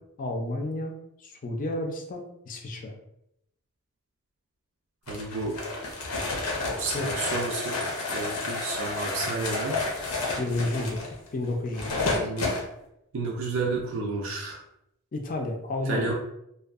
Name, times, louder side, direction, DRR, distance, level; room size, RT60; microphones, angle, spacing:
voice 1, 0.2-2.9 6.9-7.1 10.4-11.0 11.3-12.1 15.1-16.1, left 2 dB, 35° left, 2 dB, 0.4 m, -31 dB
sound 1, 5.1-12.6, left 3 dB, 85° left, 0.6 m, -30 dB
voice 2, 5.1-5.6 6.8-9.8 12.2-12.5 13.1-14.6 15.9-16.1, right 3 dB, 60° right, -2 dB, 0.4 m, -31 dB
2.6 x 2.3 x 2.4 m, 0.80 s
head